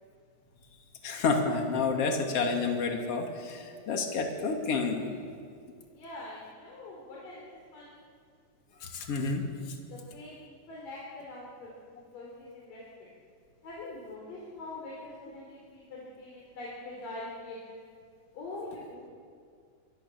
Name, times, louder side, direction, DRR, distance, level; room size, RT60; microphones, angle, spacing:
voice 1, 1.0-5.1 8.8-9.5, left 4 dB, 45° left, 2 dB, 3.4 m, -29 dB
voice 2, 5.9-8.0 9.9-13.1 13.6-17.8 18.3-19.1, left 2 dB, 80° left, -4 dB, 5.5 m, -44 dB
25.0 x 25.0 x 7.3 m, 2.3 s
omnidirectional pair, 3.8 m